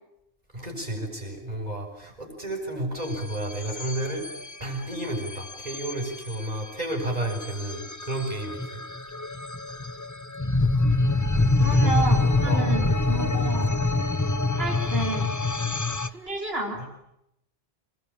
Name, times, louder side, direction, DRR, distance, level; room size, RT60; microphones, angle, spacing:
voice 1, 0.5-4.3 4.6-8.8 11.3-11.9 12.5-12.7 13.2-13.4, right 1 dB, 40° right, 3 dB, 7.5 m, -32 dB
sound 1, 3.0-16.1, left 2 dB, 15° left, 1.0 m, -26 dB
voice 2, 11.6-13.7 14.6-15.3 16.1-16.8, right 2 dB, 70° right, 1 dB, 4.4 m, -31 dB
27.5 x 21.5 x 8.9 m, 0.82 s
omnidirectional pair, 1.1 m